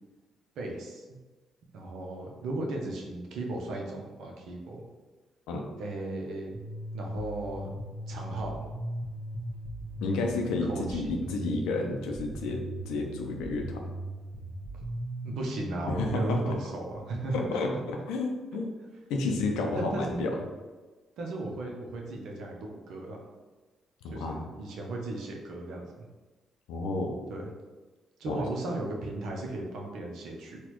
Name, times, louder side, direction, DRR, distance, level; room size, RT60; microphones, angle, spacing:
voice 1, 0.6-1.2 1.7-4.8 5.8-6.6 6.9-7.7 8.1-8.7 10.6-11.1 15.2-17.4 19.7-20.3 21.2-23.2 24.1-26.1 27.3-27.5 28.2-30.6, right 2 dB, 75° right, 0 dB, 0.6 m, -36 dB
sound 1, 6.5-16.5, equal, 10° left, 1.1 m, -39 dB
voice 2, 10.0-12.6 12.9-13.8 15.9-16.5 17.5-18.7 19.1-20.3 24.0-24.4 26.7-27.1 28.3-28.4, left 3 dB, 85° left, 2 dB, 0.5 m, -31 dB
4.1 x 2.3 x 3.0 m, 1.3 s
supercardioid pair, 55°, 0 cm